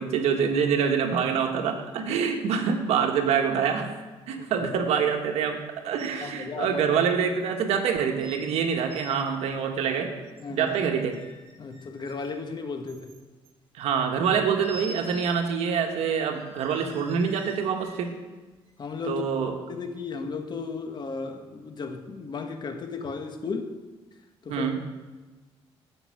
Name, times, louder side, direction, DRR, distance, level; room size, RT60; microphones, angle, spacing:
voice 1, 0.0-3.9 4.3-10.1 10.5-11.2 13.7-18.2 19.1-19.5 24.5-24.8, right 6 dB, 90° right, 1.4 m, -26 dB
voice 2, 4.4-4.7 6.2-6.8 10.4-10.7 11.6-13.2 18.8-19.2 19.7-23.7 24.4-24.7, left 4 dB, 45° left, 1.3 m, -35 dB
sound 1, 6.0-6.3 6.6-6.7 7.4-7.5 8.2-8.5 8.8-9.2 10.3-10.8 11.1-12.4 12.9-13.5 14.6-15.4 15.7-15.8 16.3-18.1 18.7-18.8, right 1 dB, 70° right, 3.5 m, -46 dB
13.0 x 5.6 x 7.7 m
cardioid pair, 110°, 11 cm